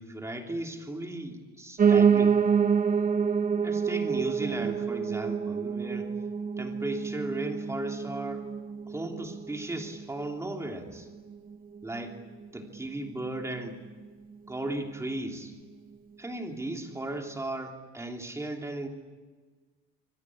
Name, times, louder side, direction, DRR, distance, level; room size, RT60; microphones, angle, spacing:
voice 1, 0.0-2.4 3.5-6.1 6.6-8.5 8.9-11.1 11.8-12.2 12.5-13.8 14.5-15.5 16.2-18.9, right 2 dB, 10° right, 2 dB, 3.0 m, -36 dB
Piano, 1.8-10.9 11.3-12.5 12.7-12.8 13.1-13.2 13.4-13.5 14.0-14.1, right 6 dB, 25° right, 0.9 m, -27 dB
26.0 x 25.5 x 8.6 m, 1.4 s
cardioid pair, 180°, 34 cm